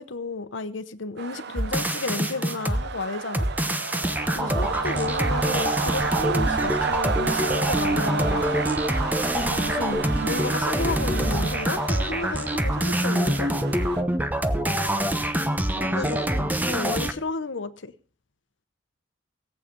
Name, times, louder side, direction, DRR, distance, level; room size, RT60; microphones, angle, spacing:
voice 1, 0.0-3.5 4.3-8.5 9.3-13.5 15.9-16.2 16.7-17.9, left 3 dB, 90° left, 1.0 m, -32 dB
sound 1, 1.2-14.0, right 5 dB, 60° right, 0.7 m, -31 dB
sound 2, 1.6-2.8 3.3-17.1, right 1 dB, 10° right, 0.9 m, -25 dB
voice 2, 4.4-4.8 14.6-15.3 15.8-16.5, equal, 35° right, 6.6 m, -36 dB
sound 3, 4.7-11.7, equal, 20° left, 3.0 m, -42 dB
17.5 x 8.4 x 5.3 m
head